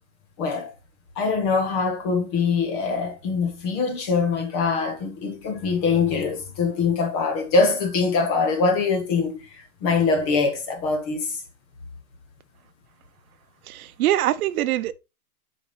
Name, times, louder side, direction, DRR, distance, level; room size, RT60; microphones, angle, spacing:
voice 1, 0.4-0.7 1.2-11.4, left 4 dB, 25° left, 1.2 m, -23 dB
voice 2, 13.7-14.9, right 13 dB, 80° right, 0.7 m, -23 dB
7.1 x 5.1 x 3.1 m
supercardioid pair, 175°, 43 cm